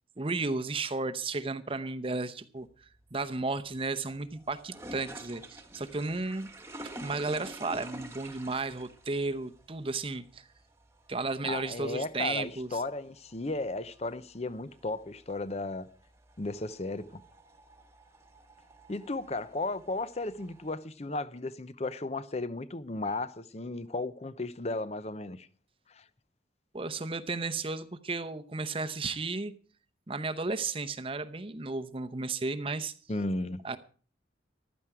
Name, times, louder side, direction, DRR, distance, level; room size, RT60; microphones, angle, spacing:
voice 1, 0.2-6.5 7.0-10.5 11.1-12.8 26.7-29.5 30.1-32.9 33.6-33.8, right 3 dB, 30° right, 0.8 m, -34 dB
sound 1, 2.6-20.8, right 1 dB, 15° right, 1.4 m, -50 dB
voice 2, 11.4-15.9 16.4-17.2 18.9-25.5 25.9-26.0 33.1-33.6, left 2 dB, 35° left, 0.7 m, -35 dB
15.0 x 12.5 x 4.8 m
head